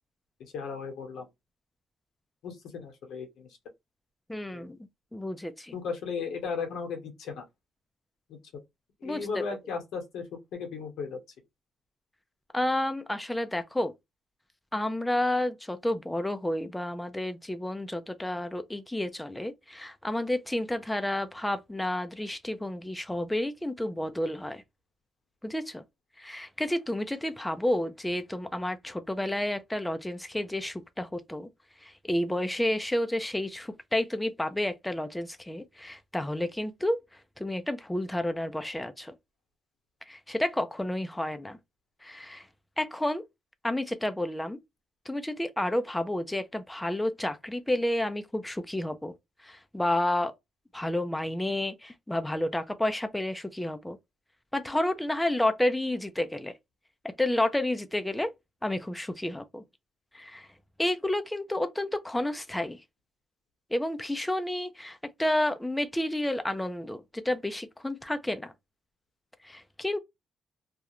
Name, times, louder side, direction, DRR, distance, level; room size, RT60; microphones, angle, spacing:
voice 1, 0.5-1.3 2.4-3.5 4.5-4.7 5.7-7.4 8.3-8.4 9.0-10.3 10.5-11.2, left 5 dB, 80° left, 0.8 m, -35 dB
voice 2, 4.3-4.8 5.1-5.7 9.0-9.4 12.5-13.9 14.7-24.6 25.4-25.8 26.2-31.5 31.8-37.0 37.4-39.1 40.1-41.6 42.0-42.5 42.8-43.2 43.6-44.6 45.1-49.1 49.4-50.3 50.7-54.0 54.5-56.5 57.2-58.3 58.6-59.6 60.1-60.5 60.8-62.8 63.7-68.5 69.4-70.0, left 1 dB, 10° left, 0.4 m, -30 dB
2.3 x 2.1 x 2.8 m
cardioid pair, 90°, 0 cm